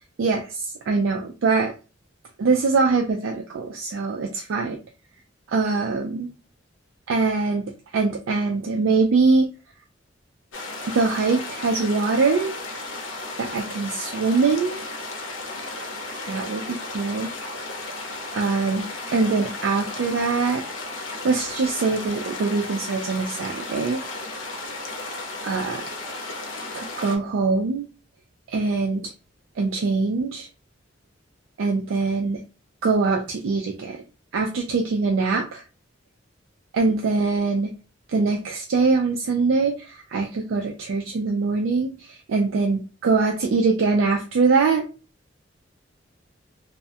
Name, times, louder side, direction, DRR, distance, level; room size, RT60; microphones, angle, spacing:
voice 1, 0.2-1.7 2.4-4.8 5.5-6.3 7.1-9.5 10.9-12.5 13.4-14.8 16.2-17.3 18.3-20.6 21.2-24.0 25.4-25.8 26.7-27.8 28.5-29.1 29.6-30.5 31.6-32.4 32.8-34.0 34.3-35.6 36.7-37.7 38.1-44.8, right 4 dB, 90° right, 2 dB, 0.4 m, -23 dB
sound 1, 10.5-27.2, left 2 dB, 75° left, 0.6 m, -34 dB
2.2 x 2.1 x 2.7 m, 0.32 s
head